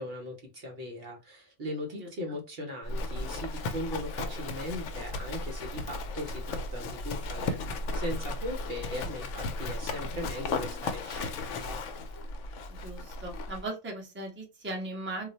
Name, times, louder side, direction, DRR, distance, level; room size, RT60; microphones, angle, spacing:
voice 1, 0.0-11.8, left 1 dB, 55° right, 1 dB, 0.9 m, -39 dB
Livestock farm animals working animals, 2.8-13.6, left 2 dB, 70° left, 0.9 m, -35 dB
voice 2, 12.7-15.3, right 2 dB, 10° right, 0 dB, 0.7 m, -38 dB
2.4 x 2.1 x 3.9 m, 0.27 s
omnidirectional pair, 1.3 m